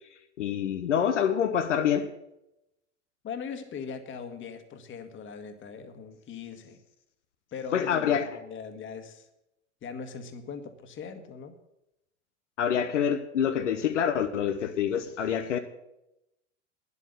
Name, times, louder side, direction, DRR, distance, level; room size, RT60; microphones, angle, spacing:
voice 1, 0.4-2.1 7.7-8.3 12.6-15.6, left 8 dB, 85° left, 0.9 m, -26 dB
voice 2, 3.2-6.8 7.5-9.3 9.8-11.5, left 6 dB, 35° left, 1.6 m, -40 dB
10.0 x 8.3 x 8.2 m
hypercardioid pair, 85°, 35 cm